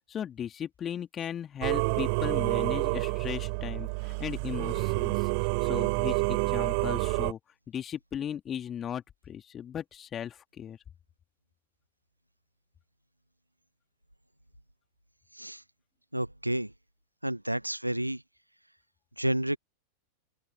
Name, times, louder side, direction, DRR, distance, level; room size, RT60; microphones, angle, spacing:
voice 1, 0.1-5.3 5.6-7.4 7.7-10.8, left 9 dB, 25° left, 3.0 m, -37 dB
Singing / Musical instrument, 1.6-7.3, right 33 dB, 45° right, 2.9 m, -28 dB
voice 2, 16.1-16.7 17.2-18.2 19.2-19.6, right 1 dB, 85° right, 0.8 m, -30 dB
open air
figure-of-eight pair, 90°, 0 cm